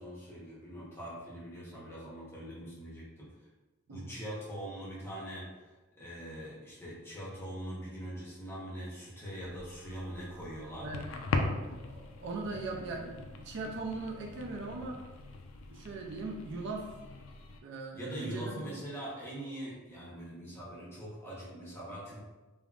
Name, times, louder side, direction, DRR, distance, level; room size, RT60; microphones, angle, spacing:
voice 1, 0.0-3.3 3.9-5.7 6.0-10.9 17.9-22.2, equal, 10° left, -7 dB, 0.7 m, -42 dB
sound 1, 9.4-17.6, left 3 dB, 65° left, 0.3 m, -40 dB
voice 2, 11.5-15.0 15.7-16.9 17.6-18.6, right 3 dB, 55° right, 1 dB, 0.3 m, -40 dB
3.4 x 2.0 x 2.3 m, 1.2 s
head